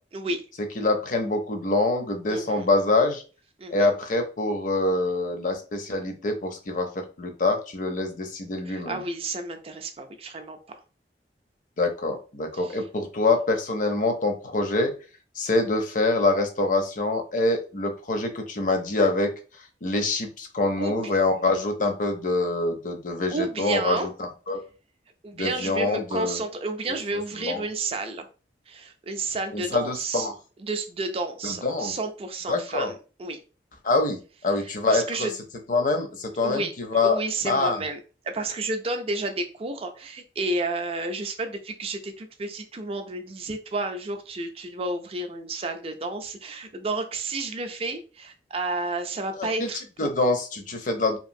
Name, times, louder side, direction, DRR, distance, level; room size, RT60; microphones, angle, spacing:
voice 1, 0.8-3.2 3.7-9.0 11.8-14.9 15.4-19.3 19.8-24.6 25.3-26.4 27.4-27.6 29.5-30.3 31.4-31.9 32.5-32.9 33.8-35.3 35.7-37.2 37.5-37.8 49.4-49.7 50.0-51.2, left 2 dB, 45° left, 5 dB, 0.6 m, -25 dB
voice 2, 2.3-2.7 3.6-3.9 8.7-10.6 12.5-12.8 20.8-21.1 23.3-24.1 25.2-28.3 28.7-30.3 30.6-33.4 34.6-35.3 36.4-36.7 37.0-38.0 38.3-50.1, right 2 dB, 35° right, 6 dB, 0.4 m, -31 dB
2.9 x 2.5 x 2.6 m, 0.35 s
head